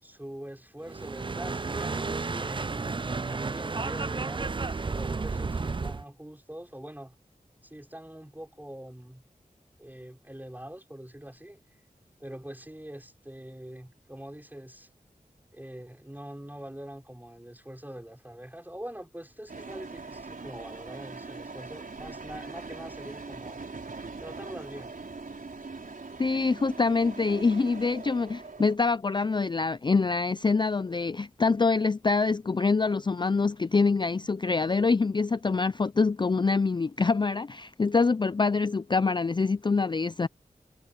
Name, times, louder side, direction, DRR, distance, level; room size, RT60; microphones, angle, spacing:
voice 1, 0.0-7.2 7.6-9.2 9.8-11.6 12.2-14.9 15.5-23.6 24.2-24.9, right 1 dB, 10° right, 5.2 m, -44 dB
sound 1, 0.8-6.0, right 4 dB, 35° right, 0.4 m, -32 dB
sound 2, 19.5-28.8, right 3 dB, 70° right, 5.0 m, -42 dB
voice 2, 26.2-40.3, left 4 dB, 30° left, 0.4 m, -25 dB
wide cardioid pair, 50°, 15 cm